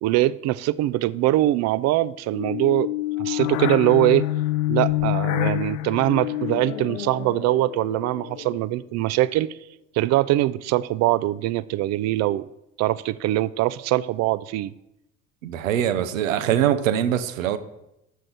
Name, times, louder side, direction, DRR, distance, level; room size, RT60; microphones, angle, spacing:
voice 1, 0.0-2.9 3.2-4.3 4.7-9.6 9.9-12.4 12.8-14.7, right 15 dB, 45° right, 0.4 m, -22 dB
sound 1, 2.3-8.7, left 16 dB, 75° left, 0.5 m, -27 dB
voice 2, 15.4-17.6, right 10 dB, 85° right, 0.6 m, -23 dB
6.3 x 6.2 x 5.3 m
hypercardioid pair, 65°, 39 cm